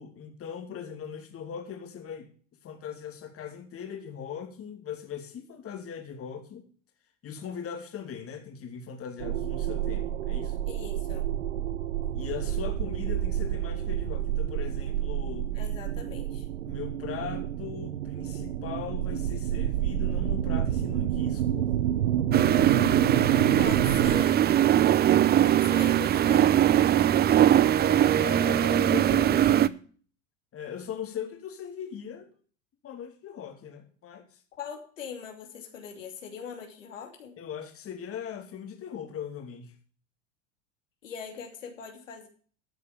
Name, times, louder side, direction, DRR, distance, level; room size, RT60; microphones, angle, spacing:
voice 1, 0.0-2.3 2.6-6.6 7.2-10.6 12.1-15.6 16.6-21.7 27.8-29.8 30.5-32.3 32.8-34.4 37.4-39.7, left 8 dB, 35° left, 2.8 m, -39 dB
sound 1, 9.2-24.2, right 11 dB, 85° right, 0.8 m, -29 dB
voice 2, 10.7-11.3 15.5-16.5 23.6-24.4 25.4-26.5 34.6-37.3 41.0-42.3, left 7 dB, 85° left, 2.8 m, -41 dB
sound 2, 22.3-29.7, right 11 dB, 25° right, 0.6 m, -21 dB
12.5 x 6.6 x 7.1 m
hypercardioid pair, 90°, 37 cm